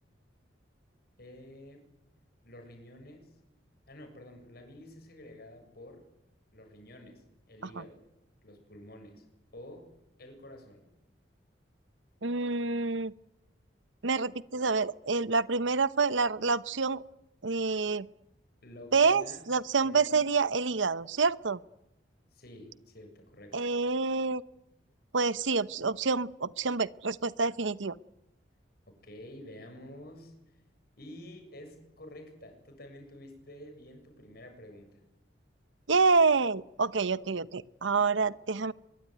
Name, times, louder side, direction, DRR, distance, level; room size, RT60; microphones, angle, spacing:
voice 1, 1.2-1.8 2.4-3.3 3.9-6.0 6.5-8.0 8.4-9.2 9.5-9.9 10.2-10.9 18.6-19.4 19.8-20.3 22.3-23.6 29.0-30.3 31.0-35.0, left 1 dB, 55° left, 5 dB, 7.5 m, -49 dB
voice 2, 12.2-13.1 14.0-17.0 17.4-18.1 18.9-21.6 23.5-24.4 25.1-28.0 35.9-38.7, right 4 dB, 90° right, 16 dB, 0.9 m, -27 dB
24.0 x 22.5 x 9.4 m, 0.85 s
head